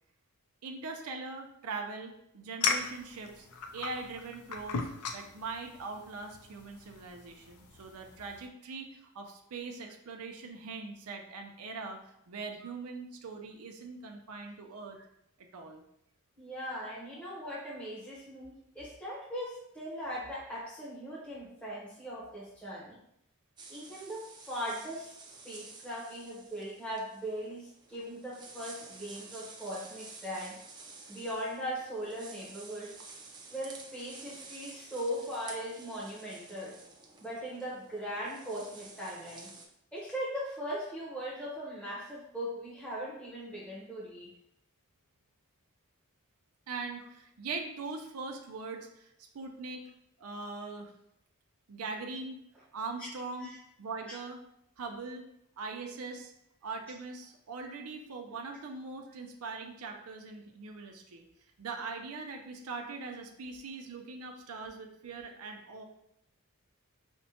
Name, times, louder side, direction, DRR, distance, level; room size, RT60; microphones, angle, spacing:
voice 1, 0.6-3.5 3.7-15.0 15.4-15.8 17.1-17.3 46.7-49.9 50.2-50.9 51.7-52.4 52.7-53.5 53.8-54.4 54.8-55.3 55.6-56.3 56.6-61.3 61.6-65.8, right 4 dB, 75° right, 3 dB, 0.5 m, -41 dB
sound 1, 2.6-8.5, left 5 dB, 80° left, 0.4 m, -38 dB
voice 2, 16.4-23.0 23.7-25.1 25.4-30.6 31.1-33.0 33.5-36.8 37.2-39.5 39.9-44.3 53.0-53.1 53.4-53.6, equal, 5° left, -8 dB, 0.8 m, -39 dB
sound 2, 23.6-39.7, right 3 dB, 20° right, 0.5 m, -51 dB
5.2 x 2.1 x 2.8 m, 0.76 s
head